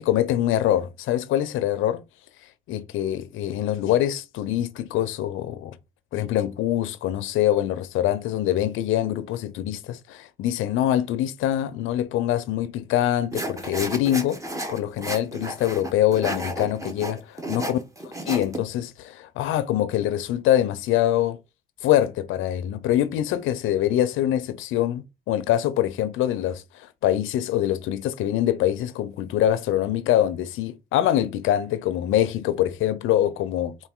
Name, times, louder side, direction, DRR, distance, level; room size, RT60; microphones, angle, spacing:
voice 1, 0.0-2.0 2.7-5.8 6.1-14.4 14.7-17.8 18.3-21.4 21.8-33.8, left 12 dB, 85° left, 0.5 m, -24 dB
sound 1, 13.3-18.6, right 1 dB, 15° right, 1.1 m, -32 dB
3.9 x 2.6 x 3.6 m
cardioid pair, 90°, 20 cm